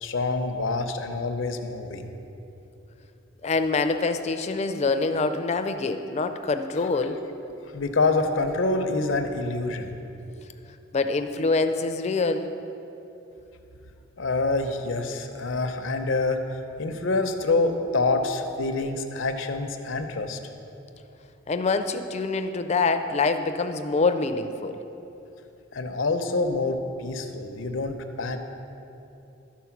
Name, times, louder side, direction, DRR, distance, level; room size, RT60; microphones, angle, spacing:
voice 1, 0.0-2.1 7.0-7.1 7.6-10.0 14.2-20.4 25.7-28.4, left 3 dB, 80° left, 7 dB, 0.7 m, -26 dB
voice 2, 3.4-7.2 10.9-12.5 21.5-24.8, left 3 dB, 35° left, 9 dB, 0.4 m, -25 dB
12.5 x 4.3 x 5.8 m, 2.9 s
head